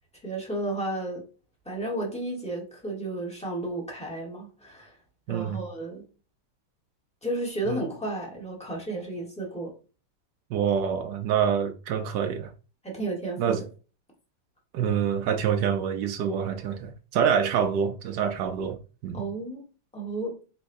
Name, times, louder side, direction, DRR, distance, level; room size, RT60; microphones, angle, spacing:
voice 1, 0.2-1.2 1.6-4.9 5.3-6.0 7.2-9.7 12.8-13.6 19.1-19.6 19.9-20.4, right 2 dB, 5° left, 0.9 m, -32 dB
voice 2, 5.3-5.6 7.6-7.8 10.5-12.5 13.4-13.7 14.7-18.8 19.0-19.2, right 8 dB, 80° right, 0.9 m, -26 dB
4.6 x 4.2 x 2.6 m
omnidirectional pair, 2.4 m